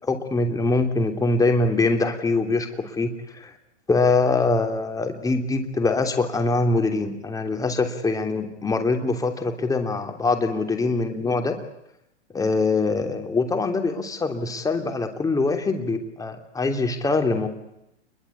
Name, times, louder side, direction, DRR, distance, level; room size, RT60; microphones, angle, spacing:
voice 1, 0.0-3.5 3.9-11.6 12.3-17.5, left 3 dB, 10° left, 5 dB, 3.1 m, -23 dB
28.5 x 22.5 x 8.6 m, 0.83 s
hypercardioid pair, 130°, 35 cm